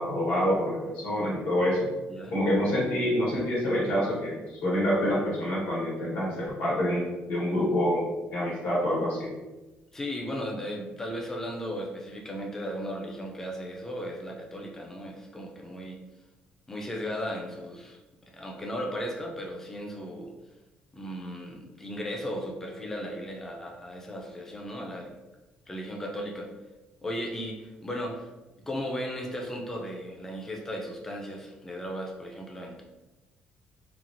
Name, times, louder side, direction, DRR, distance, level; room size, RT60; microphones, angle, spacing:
voice 1, 0.0-1.9 2.3-9.3, equal, 65° left, -6 dB, 1.1 m, -27 dB
voice 2, 9.9-16.0 16.7-18.0 18.3-20.3 20.9-25.2 25.7-26.5 27.0-28.3 28.7-32.8, equal, 10° left, 0 dB, 0.4 m, -36 dB
3.0 x 2.4 x 2.5 m, 1.1 s
cardioid pair, 180°, 4 cm